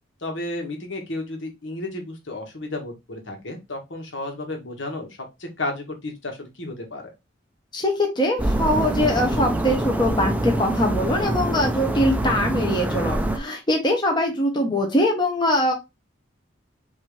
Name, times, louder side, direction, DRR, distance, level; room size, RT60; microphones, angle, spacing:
voice 1, 0.2-5.1 5.4-7.0, left 2 dB, 70° left, 2 dB, 1.6 m, -32 dB
voice 2, 7.7-15.7, left 1 dB, 25° left, 1 dB, 1.1 m, -22 dB
sound 1, 8.4-13.4, right 1 dB, 10° right, 0.6 m, -25 dB
5.9 x 2.8 x 3.2 m, 0.23 s
head